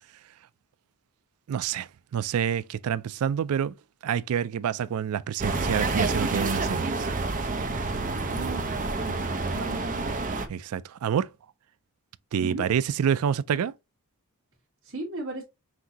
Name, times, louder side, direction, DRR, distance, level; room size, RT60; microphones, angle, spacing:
voice 1, 1.5-3.7 4.0-6.9 10.5-11.3 12.3-13.7, right 8 dB, 80° right, 0.3 m, -27 dB
sound 1, 5.4-10.5, right 3 dB, 35° right, 0.7 m, -28 dB
voice 2, 8.3-9.9 12.4-12.6 14.8-15.4, right 2 dB, 60° right, 1.6 m, -36 dB
5.9 x 2.6 x 2.8 m
head